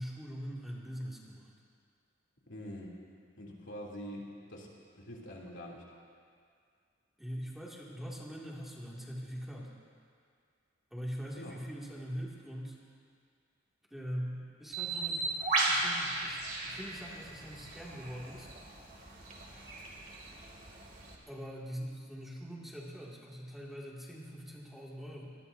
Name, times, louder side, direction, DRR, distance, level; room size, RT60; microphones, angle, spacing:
voice 1, 0.0-1.5 7.2-9.7 10.9-12.8 13.9-15.4 15.7-18.5 21.3-25.4, equal, ahead, -5 dB, 2.2 m, -42 dB
voice 2, 2.5-2.9 3.4-4.7 4.9-5.8 11.4-11.6, equal, 70° left, -3 dB, 2.9 m, -45 dB
Bird, 14.7-21.2, right 2 dB, 45° right, 2.6 m, -36 dB
26.0 x 19.5 x 2.7 m, 2.2 s
head